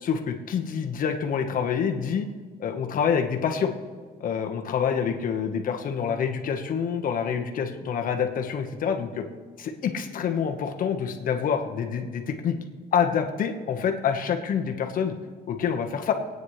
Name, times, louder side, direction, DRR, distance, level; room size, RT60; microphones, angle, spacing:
voice 1, 0.0-2.3 2.6-3.7 4.2-9.2 9.6-12.6 12.9-15.1 15.5-16.1, left 7 dB, 55° left, 4 dB, 1.3 m, -27 dB
25.0 x 9.4 x 3.3 m, 1.5 s
cardioid pair, 110°, 17 cm